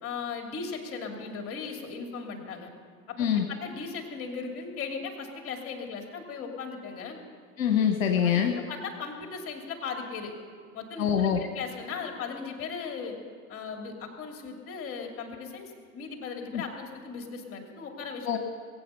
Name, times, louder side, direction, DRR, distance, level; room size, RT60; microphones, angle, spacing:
voice 1, 0.0-2.7 3.1-3.2 3.5-7.2 8.2-10.3 10.7-13.2 13.5-18.3, left 5 dB, 30° left, 3 dB, 2.8 m, -37 dB
voice 2, 7.6-8.5 11.0-11.4 16.5-16.6 18.3-18.4, left 8 dB, 60° left, 4 dB, 1.3 m, -24 dB
21.0 x 8.7 x 6.8 m, 2.2 s
figure-of-eight pair, 90°, 44 cm